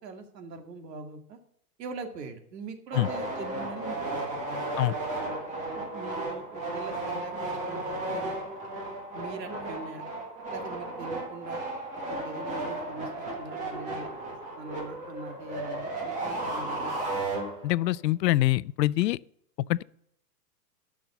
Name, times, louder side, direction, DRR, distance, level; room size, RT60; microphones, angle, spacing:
voice 1, 0.0-1.4 1.8-4.4 5.7-8.4 9.1-10.0 10.5-11.6 12.0-14.1 14.6-16.9, right 4 dB, 80° right, 2.3 m, -42 dB
sound 1, 2.9-17.9, right 2 dB, 15° right, 1.6 m, -34 dB
voice 2, 17.6-19.2 19.7-19.8, left 16 dB, 80° left, 0.6 m, -24 dB
12.0 x 6.2 x 6.9 m
supercardioid pair, 175°, 49 cm